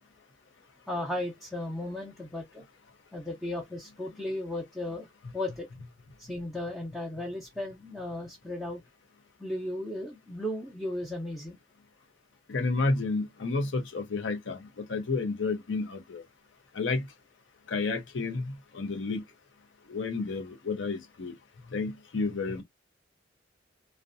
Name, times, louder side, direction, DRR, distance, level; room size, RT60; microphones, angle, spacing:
voice 1, 0.9-2.6 3.1-5.1 5.3-5.7 6.2-8.8 9.4-11.6, left 1 dB, ahead, 0.5 m, -35 dB
voice 2, 12.5-16.2 16.7-17.1 17.7-19.2 19.9-21.3 21.7-22.6, left 3 dB, 80° left, 0.6 m, -31 dB
2.6 x 2.1 x 2.5 m
head